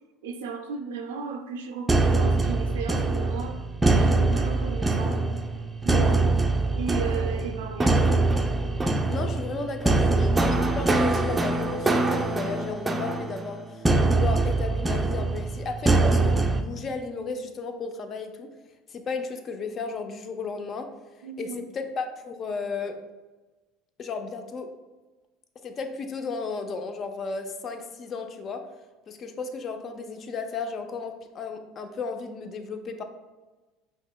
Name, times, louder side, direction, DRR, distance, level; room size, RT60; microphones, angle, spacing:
voice 1, 0.2-3.6 3.9-5.2 5.8-6.2 6.7-8.0 21.2-21.6, right 5 dB, 85° right, 5 dB, 0.3 m, -35 dB
sound 1, 1.9-16.6, right 2 dB, 15° right, 0.4 m, -23 dB
voice 2, 9.1-18.5 18.9-20.9 21.4-23.0 24.0-24.7 25.6-28.6 29.1-33.0, left 4 dB, 40° left, 7 dB, 0.5 m, -34 dB
5.3 x 3.0 x 2.3 m, 1.2 s
hypercardioid pair, 85°, 0 cm